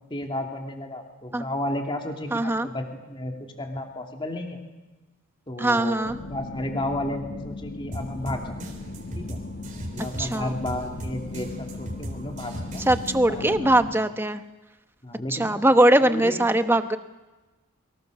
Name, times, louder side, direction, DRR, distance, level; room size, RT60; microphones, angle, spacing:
voice 1, 0.1-4.6 5.5-8.8 9.1-9.4 9.9-12.9 13.3-13.7 15.0-15.5 16.0-16.4, left 1 dB, 25° left, 3 dB, 2.7 m, -33 dB
voice 2, 2.3-2.7 5.6-6.2 10.2-10.5 12.9-14.4 15.3-17.0, right 1 dB, 10° right, 9 dB, 1.0 m, -21 dB
sound 1, 6.0-14.0, left 2 dB, 50° left, 1.4 m, -38 dB
sound 2, 7.9-13.4, equal, 35° right, 3.5 m, -38 dB
28.0 x 24.0 x 6.6 m, 1.1 s
head